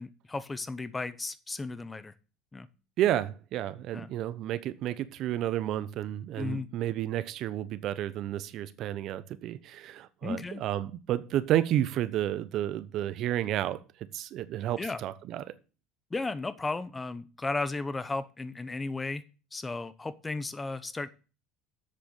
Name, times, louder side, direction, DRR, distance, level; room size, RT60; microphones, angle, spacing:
voice 1, 0.0-2.1 2.5-2.7 3.9-4.1 6.4-6.7 10.2-10.6 14.8-15.0 16.1-19.2 19.5-21.1, left 3 dB, 15° left, 0.8 m, -34 dB
voice 2, 3.0-13.8 14.1-15.5, right 12 dB, 55° right, 0.9 m, -31 dB
7.8 x 6.8 x 6.7 m
supercardioid pair, 100°, 0 cm